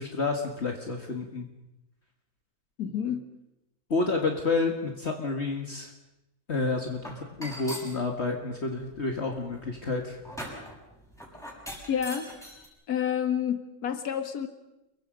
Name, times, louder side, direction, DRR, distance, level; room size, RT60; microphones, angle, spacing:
voice 1, 0.0-1.5 3.9-5.9 6.5-10.2, left 3 dB, 45° left, 3 dB, 2.1 m, -30 dB
voice 2, 2.8-3.2 11.9-12.3 12.9-14.5, left 8 dB, 90° left, 8 dB, 1.9 m, -29 dB
sound 1, 7.0-8.0 8.7-12.7, equal, ahead, 6.6 m, -41 dB
29.5 x 22.5 x 5.3 m, 0.91 s
omnidirectional pair, 1.6 m